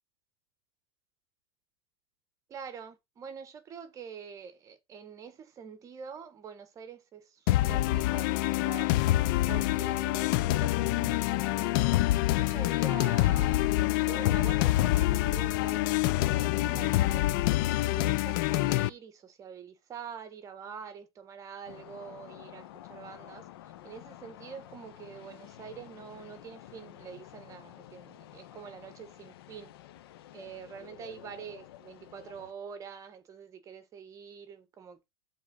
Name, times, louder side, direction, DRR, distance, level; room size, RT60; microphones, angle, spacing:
voice 1, 2.5-8.9 9.5-11.9 12.3-17.2 17.8-23.5 23.8-29.7 30.3-35.0, right 7 dB, 25° right, 1.5 m, -45 dB
sound 1, 7.5-18.9, left 17 dB, 50° left, 0.4 m, -26 dB
sound 2, 21.7-32.5, left 13 dB, 65° left, 0.9 m, -50 dB
7.3 x 3.8 x 5.5 m
supercardioid pair, 135°, 14 cm